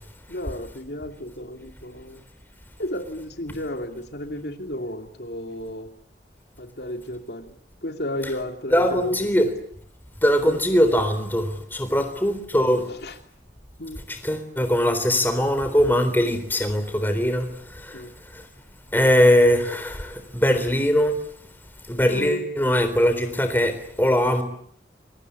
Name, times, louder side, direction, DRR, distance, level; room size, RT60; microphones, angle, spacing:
voice 1, 0.3-2.2 2.8-5.9 6.6-7.5 7.8-9.5 10.5-10.6 13.0-13.1 13.8-14.0 17.9-18.1 22.0-22.5, left 1 dB, 65° left, 2.7 m, -32 dB
voice 2, 8.7-9.5 10.2-12.8 14.1-18.0 18.3-18.4 18.9-21.1 21.9-24.4, equal, 10° left, 3.8 m, -21 dB
28.5 x 23.5 x 8.4 m
head